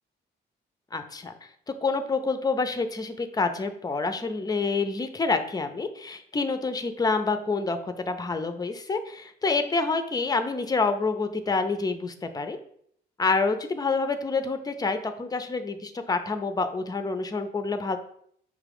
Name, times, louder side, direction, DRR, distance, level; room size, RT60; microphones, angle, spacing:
voice 1, 0.9-1.3 1.8-12.6 13.2-18.0, left 4 dB, 20° left, 9 dB, 0.5 m, -27 dB
6.0 x 2.4 x 3.4 m, 0.66 s
cardioid pair, 90°, 20 cm